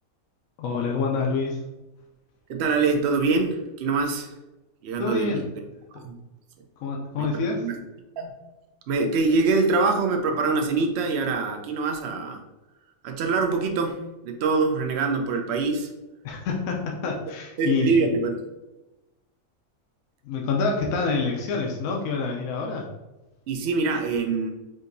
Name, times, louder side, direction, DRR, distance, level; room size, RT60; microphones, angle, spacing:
voice 1, 0.6-1.6 5.0-5.4 5.9-6.0 6.8-7.7 16.2-18.1 20.2-22.9, left 4 dB, 75° left, 0 dB, 1.0 m, -27 dB
voice 2, 2.5-4.3 4.8-5.4 6.0-6.2 7.2-7.8 8.2-8.3 8.9-12.4 13.0-14.0 14.2-15.9 17.6-18.4 23.5-24.5, right 4 dB, 60° right, 4 dB, 0.7 m, -24 dB
5.0 x 2.7 x 2.6 m, 1.0 s
omnidirectional pair, 1.5 m